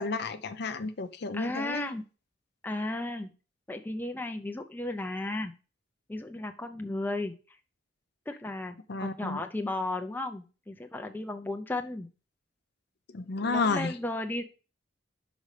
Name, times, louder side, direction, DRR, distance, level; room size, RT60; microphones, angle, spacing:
voice 1, 0.0-1.9 8.9-9.4 13.1-13.9, left 4 dB, 60° left, 0.6 m, -31 dB
voice 2, 1.3-2.0 2.6-3.3 3.7-5.5 6.1-7.6 8.3-12.1 13.4-14.4, left 2 dB, 10° left, 0.5 m, -34 dB
5.4 x 5.1 x 4.9 m
head